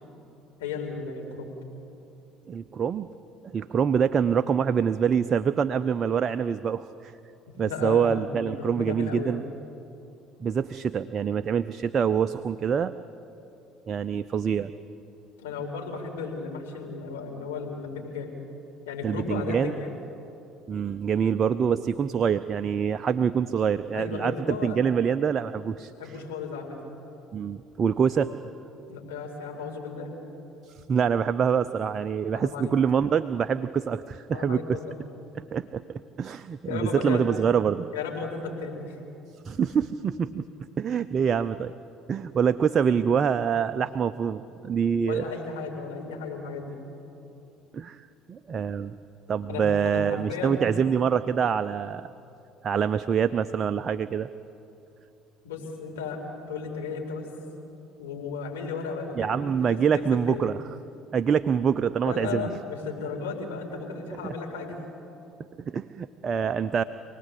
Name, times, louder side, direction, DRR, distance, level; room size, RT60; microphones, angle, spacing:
voice 1, 0.6-1.5 7.6-9.4 15.4-18.3 18.9-19.9 23.9-24.8 26.0-26.8 28.9-30.1 32.3-32.7 34.3-35.0 36.7-37.2 37.9-39.0 45.0-46.8 49.5-50.7 55.4-56.2 56.5-57.3 58.0-59.5 59.9-60.5 62.0-64.7, left 5 dB, 85° left, 0 dB, 4.7 m, -35 dB
voice 2, 2.5-3.1 3.4-7.1 7.6-9.4 10.4-12.9 13.9-14.7 19.0-19.7 20.7-25.9 27.3-28.5 30.6-34.8 35.3-35.8 36.2-37.9 39.4-40.5 40.8-41.7 42.1-45.3 47.7-48.0 48.3-49.0 49.3-52.1 52.6-54.3 59.2-60.6 61.1-62.6 64.2-64.3 65.7-66.8, right 7 dB, 40° right, 11 dB, 0.7 m, -25 dB
27.5 x 19.0 x 8.5 m, 2.8 s
hypercardioid pair, 65°, 0 cm